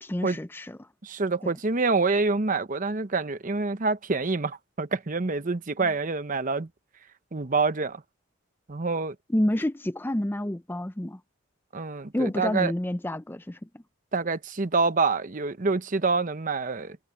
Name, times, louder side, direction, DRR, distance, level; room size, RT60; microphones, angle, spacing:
voice 1, 0.0-0.8 1.4-1.5 5.8-5.9 9.3-11.2 12.1-13.6, left 1 dB, 10° left, 0.5 m, -28 dB
voice 2, 1.0-6.7 7.3-8.0 8.7-9.1 11.7-12.7 14.1-17.0, right 4 dB, 40° right, 0.9 m, -26 dB
head